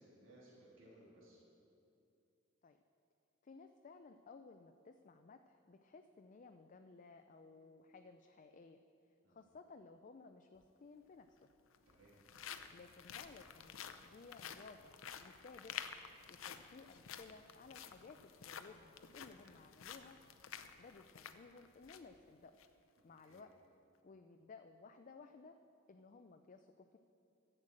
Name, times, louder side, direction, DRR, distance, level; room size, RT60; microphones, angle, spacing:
voice 1, 0.0-1.4 9.2-9.4 11.9-12.1 19.4-19.5 23.2-23.4, right 1 dB, 75° right, -6 dB, 3.4 m, -62 dB
voice 2, 3.4-8.8 9.3-11.5 12.7-15.8 16.3-20.2 20.8-22.5 23.0-23.5 24.0-25.6 25.9-27.0, left 4 dB, 40° left, 7 dB, 0.4 m, -58 dB
sound 1, 10.6-10.7 11.6-22.1 22.5-22.7 23.2-23.4, left 8 dB, 90° left, 0.6 m, -51 dB
11.5 x 7.9 x 7.5 m, 2.6 s
head